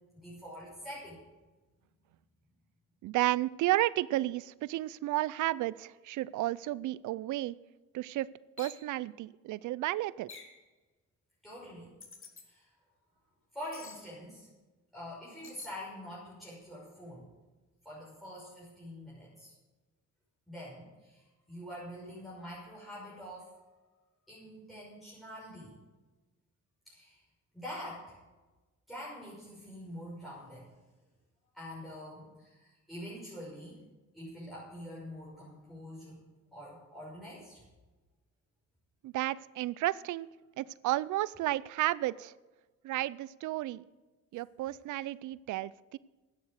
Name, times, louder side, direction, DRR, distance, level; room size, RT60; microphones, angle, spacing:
voice 1, 0.2-1.2 11.4-11.9 12.4-12.7 13.5-14.5 14.9-17.3 17.8-19.5 20.5-23.5 24.3-25.7 26.9-27.2 27.5-28.1 28.9-30.7 31.5-33.8 34.1-36.2 36.5-37.6, equal, ahead, -8 dB, 5.7 m, -45 dB
voice 2, 3.0-7.5 7.9-8.3 8.6-10.3 39.0-40.3 40.6-42.3 42.8-43.8 44.3-46.0, right 16 dB, 80° right, 20 dB, 0.5 m, -32 dB
sound 1, 8.6-8.8 10.3-10.6 12.0-12.5 13.7-14.0 15.4-15.7, left 4 dB, 45° left, 2.2 m, -49 dB
12.0 x 9.4 x 6.5 m, 1.2 s
cardioid pair, 90°, 30 cm